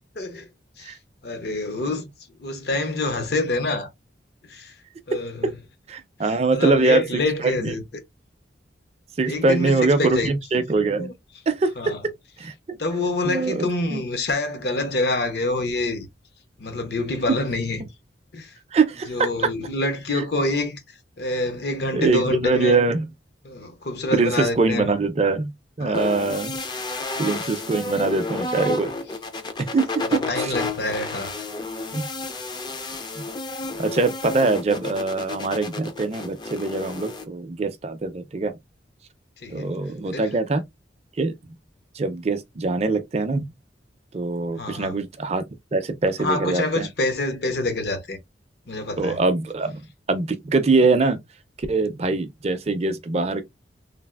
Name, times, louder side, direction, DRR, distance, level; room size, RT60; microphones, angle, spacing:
voice 1, 0.2-0.5 0.8-0.9 1.2-2.1 2.4-3.9 4.5-4.7 5.1-5.5 6.2-7.8 9.3-10.4 11.0-11.1 11.8-12.0 12.8-16.1 16.6-17.9 18.3-18.5 19.1-20.8 21.2-22.8 23.4-24.9 25.8-26.0 30.1-31.3 39.4-39.7 40.1-40.3 44.6-45.0 46.2-48.2 48.7-49.2, left 2 dB, 60° left, 0.7 m, -26 dB
voice 2, 5.9-7.7 9.2-11.1 11.5-11.9 12.4-12.8 13.2-14.0 18.7-19.3 21.9-23.1 24.1-25.5 25.8-26.6 27.2-28.9 29.6-29.8 30.4-30.6 31.9-32.1 33.2-33.3 33.8-38.5 39.5-40.6 41.2-41.3 42.0-43.4 44.1-45.4 45.7-46.9 49.0-49.8 50.1-51.2 51.6-53.4, right 3 dB, 35° right, 0.4 m, -23 dB
sound 1, 25.9-37.2, left 2 dB, 25° left, 0.4 m, -31 dB
3.3 x 2.4 x 2.3 m
head